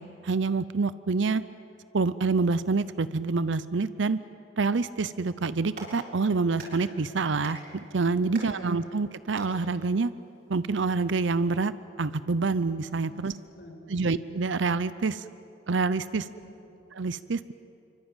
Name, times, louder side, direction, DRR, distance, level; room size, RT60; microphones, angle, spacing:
voice 1, 0.0-1.4 1.9-4.2 4.6-10.1 10.5-11.7 12.0-13.3 13.9-15.2 15.7-16.3 16.9-17.5, right 4 dB, 75° right, 15 dB, 0.6 m, -27 dB
Clapping, 5.4-10.9, right 2 dB, 50° right, 7.0 m, -48 dB
voice 2, 8.4-8.9 13.0-14.1 16.2-16.7, left 1 dB, 60° left, 2 dB, 5.1 m, -49 dB
25.5 x 24.5 x 9.0 m, 2.7 s
head